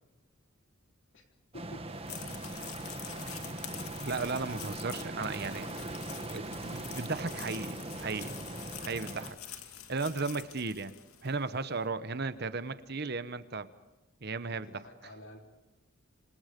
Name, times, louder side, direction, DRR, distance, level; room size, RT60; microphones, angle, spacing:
voice 1, 1.5-1.9 14.5-15.5, left 1 dB, 60° left, 3 dB, 3.8 m, -50 dB
sound 1, 1.5-9.3, right 2 dB, 25° right, 1.6 m, -40 dB
sound 2, 1.9-11.4, left 10 dB, 80° left, 2.4 m, -46 dB
voice 2, 4.0-5.7 6.3-8.3 8.8-9.5 9.9-10.9 11.2-13.7 14.2-14.8, right 4 dB, 45° right, 13 dB, 1.0 m, -35 dB
27.0 x 27.0 x 5.3 m, 1.0 s
head